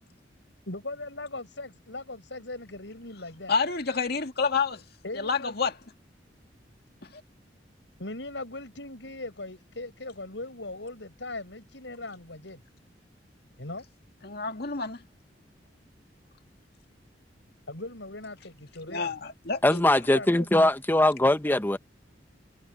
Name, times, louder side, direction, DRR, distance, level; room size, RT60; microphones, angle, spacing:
voice 1, 0.7-3.5 5.0-5.7 8.0-12.6 13.6-13.8 17.7-19.1 20.1-20.6, left 2 dB, 90° left, 7.2 m, -39 dB
voice 2, 3.5-4.8 5.1-5.7 14.2-15.0 18.9-19.8, left 5 dB, 60° left, 2.1 m, -28 dB
voice 3, 19.6-21.8, left 1 dB, 10° left, 0.8 m, -21 dB
head